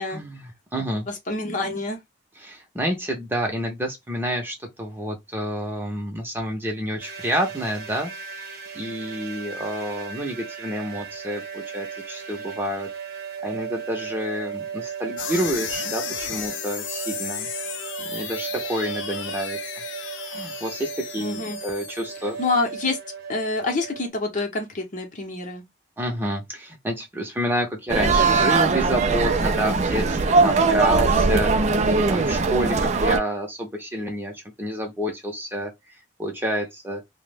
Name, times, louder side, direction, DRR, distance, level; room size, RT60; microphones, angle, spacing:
voice 1, 0.1-1.1 2.4-8.4 8.7-12.9 13.4-17.5 18.0-19.6 20.3-22.4 26.0-30.1 30.4-31.5 31.9-35.7 36.2-37.0, equal, 10° right, 0.7 m, -29 dB
voice 2, 1.1-2.0 21.2-21.6 22.4-23.0 23.3-25.6 31.7-32.0, left 3 dB, 45° left, 0.8 m, -27 dB
sound 1, 7.0-24.1, right 6 dB, 60° right, 0.8 m, -36 dB
sound 2, 15.2-22.6, left 9 dB, 90° left, 0.4 m, -34 dB
sound 3, 27.9-33.2, right 3 dB, 40° right, 0.3 m, -20 dB
2.9 x 2.1 x 3.3 m
head